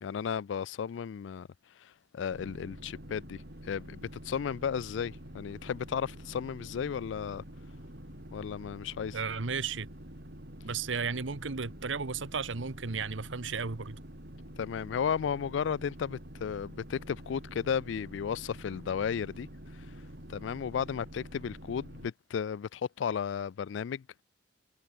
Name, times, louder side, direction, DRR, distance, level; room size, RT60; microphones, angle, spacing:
voice 1, 0.0-1.5 1.8-7.4 8.3-9.2 14.6-19.5 20.3-24.2, left 7 dB, 75° left, 0.3 m, -34 dB
sound 1, 2.3-22.1, equal, 60° right, 5.3 m, -47 dB
voice 2, 9.1-9.9 10.6-14.0, right 5 dB, 90° right, 1.1 m, -34 dB
head